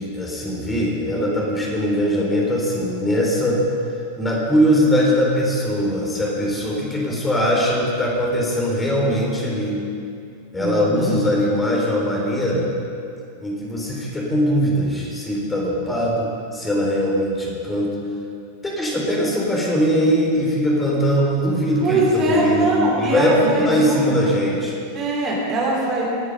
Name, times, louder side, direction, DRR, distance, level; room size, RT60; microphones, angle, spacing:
voice 1, 0.0-3.6 4.2-9.8 10.5-12.7 13.4-18.0 18.6-22.7 23.0-24.8, equal, 10° left, -3 dB, 3.9 m, -21 dB
voice 2, 10.6-11.2 21.8-24.1 24.9-26.0, right 2 dB, 30° right, -3 dB, 3.4 m, -22 dB
19.0 x 9.8 x 5.4 m, 2.5 s
figure-of-eight pair, 90°, 0 cm